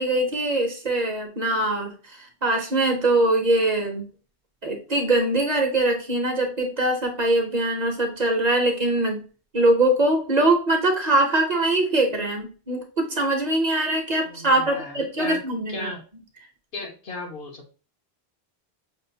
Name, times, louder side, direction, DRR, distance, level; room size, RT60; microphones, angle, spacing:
voice 1, 0.0-1.9 2.2-4.0 4.6-9.2 9.5-15.9, right 2 dB, 45° right, 3 dB, 0.8 m, -22 dB
voice 2, 14.2-15.4 15.7-16.0 16.7-17.7, left 3 dB, 65° left, 1 dB, 1.3 m, -35 dB
6.1 x 2.5 x 2.6 m, 0.37 s
omnidirectional pair, 1.1 m